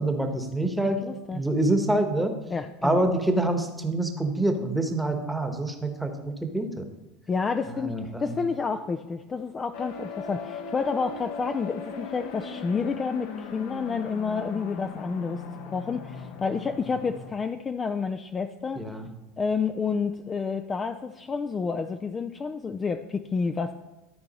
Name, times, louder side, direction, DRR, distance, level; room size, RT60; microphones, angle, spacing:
voice 1, 0.0-1.0 1.3-2.3 2.8-6.9 7.7-8.4 18.8-19.1, right 1 dB, 5° right, 5 dB, 1.1 m, -26 dB
voice 2, 0.8-1.4 2.5-3.0 7.3-7.9 8.2-18.8 19.4-23.7, left 5 dB, 25° left, 8 dB, 0.4 m, -29 dB
sound 1, 9.7-17.3, left 5 dB, 70° left, 1.0 m, -39 dB
12.5 x 4.5 x 4.1 m, 1.0 s
supercardioid pair, 110°, 0 cm